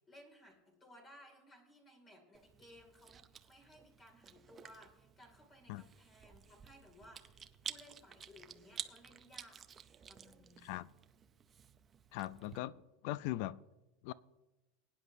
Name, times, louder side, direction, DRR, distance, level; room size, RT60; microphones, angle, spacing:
voice 1, 0.1-9.6 10.1-10.8, left 1 dB, 20° left, 3 dB, 2.4 m, -60 dB
Chewing mastication, 2.3-12.6, right 7 dB, 20° right, 0.5 m, -52 dB
voice 2, 12.1-13.6 14.0-14.1, left 16 dB, 55° left, 18 dB, 0.4 m, -40 dB
21.5 x 9.8 x 2.7 m, 1.1 s
supercardioid pair, 165°, 0 cm